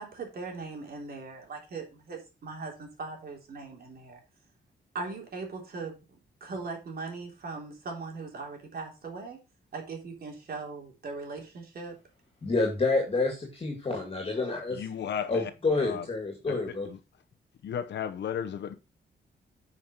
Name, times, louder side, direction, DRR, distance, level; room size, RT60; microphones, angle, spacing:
voice 1, 0.0-4.2 4.9-9.4 9.7-12.0, right 4 dB, 60° right, 3.5 m, -39 dB
voice 2, 12.4-14.8 15.3-16.9, left 3 dB, 30° left, 2.3 m, -28 dB
voice 3, 14.7-15.5 15.8-16.0 16.5-16.6 16.9-17.0 17.6-18.7, left 8 dB, 80° left, 0.9 m, -34 dB
9.7 x 5.6 x 4.5 m
wide cardioid pair, 150°, 18 cm